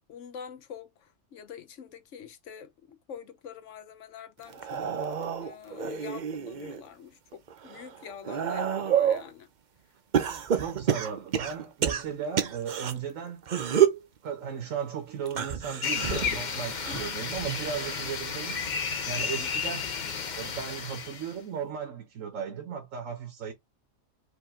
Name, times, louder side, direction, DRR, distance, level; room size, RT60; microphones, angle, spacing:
voice 1, 0.1-4.9 5.4-9.5 16.9-17.0 19.4-19.5, left 8 dB, 75° left, 1.1 m, -45 dB
sound 1, 4.5-6.8 7.3-9.3 10.1-12.9 13.4-14.1 15.3-18.1 18.5-18.9 20.1-20.2, right 9 dB, 50° right, 0.6 m, -29 dB
voice 2, 10.5-13.4 14.2-18.6 19.1-19.9 20.4-23.5, right 7 dB, 85° right, 1.4 m, -36 dB
sound 2, 15.8-21.3, left 6 dB, 45° left, 0.8 m, -32 dB
5.1 x 2.8 x 3.6 m
omnidirectional pair, 1.3 m